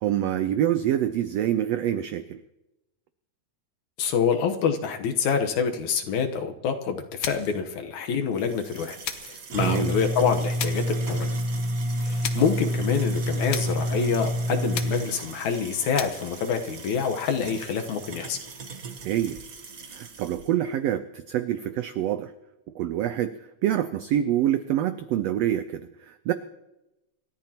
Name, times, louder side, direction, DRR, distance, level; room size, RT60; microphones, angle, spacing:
voice 1, 0.0-2.4 9.6-9.9 19.0-19.4 19.9-22.3 22.7-26.3, right 11 dB, 85° right, 10 dB, 1.4 m, -26 dB
voice 2, 4.0-9.0 9.2-11.3 12.0-18.4, left 6 dB, 70° left, 5 dB, 2.4 m, -26 dB
sound 1, 7.2-7.6 9.0-9.4 10.6-11.0 12.2-12.6 13.5-13.9 14.7-15.2 15.9-16.3, left 8 dB, 85° left, 1.0 m, -34 dB
sound 2, 8.4-20.4, equal, 70° right, 0.8 m, -30 dB
27.0 x 13.5 x 2.9 m, 0.92 s
omnidirectional pair, 3.6 m